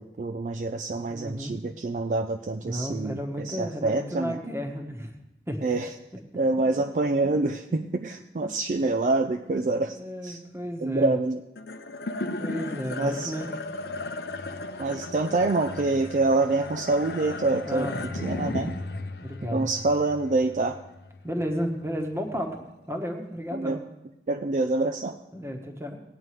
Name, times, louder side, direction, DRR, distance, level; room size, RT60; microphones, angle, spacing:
voice 1, 0.0-4.4 5.6-5.9 6.3-10.4 10.8-11.4 13.0-13.3 14.8-17.9 18.2-18.7 19.5-20.8 23.5-23.8 24.3-25.2, right 3 dB, 45° right, 6 dB, 0.4 m, -26 dB
voice 2, 1.1-1.6 2.6-5.1 5.5-5.6 9.9-11.1 12.4-13.5 17.6-18.6 19.2-19.7 21.2-22.6 22.9-23.8 25.3-26.0, equal, 15° right, 3 dB, 1.1 m, -33 dB
sound 1, 11.6-22.1, left 2 dB, 60° left, 0.7 m, -36 dB
18.5 x 9.0 x 3.2 m, 0.93 s
head